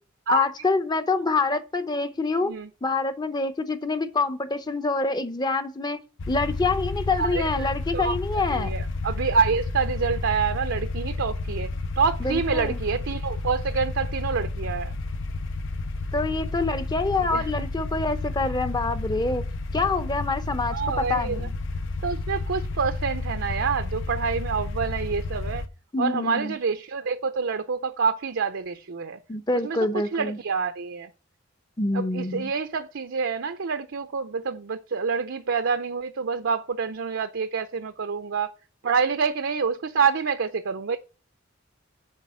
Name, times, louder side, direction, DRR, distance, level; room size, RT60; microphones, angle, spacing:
voice 1, 0.3-2.5 2.8-6.0 6.3-8.7 12.2-12.8 16.1-19.4 19.7-21.5 25.9-26.5 29.3-30.4 31.8-32.5, left 3 dB, 20° left, 0.8 m, -26 dB
sound 1, 6.2-25.7, left 2 dB, 65° left, 0.7 m, -31 dB
voice 2, 7.2-11.7 12.0-15.0 17.3-17.5 20.7-21.5 22.0-25.7 26.0-29.2 29.6-29.8 30.1-31.1 31.9-38.5 38.8-41.0, right 5 dB, 65° right, 0.6 m, -27 dB
7.3 x 5.1 x 7.0 m
head